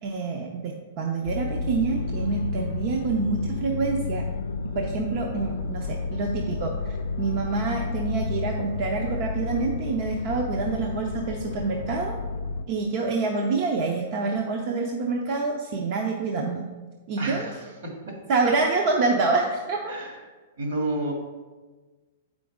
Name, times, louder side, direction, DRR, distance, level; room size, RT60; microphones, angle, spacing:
voice 1, 0.0-4.2 4.7-12.2 12.7-16.6 17.1-17.4 18.3-19.9, right 4 dB, 40° right, 1 dB, 0.6 m, -27 dB
sound 1, 1.2-12.6, left 4 dB, 90° left, 0.4 m, -31 dB
voice 2, 17.2-18.2 19.9-20.2 20.6-21.1, right 1 dB, 70° right, 0 dB, 2.0 m, -31 dB
7.6 x 5.1 x 3.6 m, 1.3 s
hypercardioid pair, 160°, 0 cm